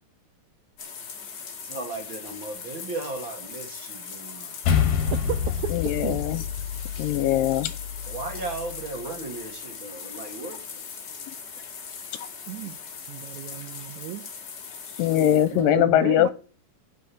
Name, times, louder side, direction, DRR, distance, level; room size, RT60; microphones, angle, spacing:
sound 1, 0.8-15.7, left 6 dB, 45° left, 1.6 m, -40 dB
voice 1, 1.6-4.5 8.1-10.8, right 3 dB, 40° right, 2.4 m, -36 dB
sound 2, 4.6-9.2, left 7 dB, 60° left, 2.6 m, -28 dB
voice 2, 5.1-6.3 12.5-12.8 13.1-14.2 15.5-16.3, right 13 dB, 80° right, 1.7 m, -33 dB
voice 3, 5.7-6.4 7.0-7.7 15.0-16.3, left 12 dB, 85° left, 2.4 m, -21 dB
9.1 x 6.2 x 8.5 m
omnidirectional pair, 4.0 m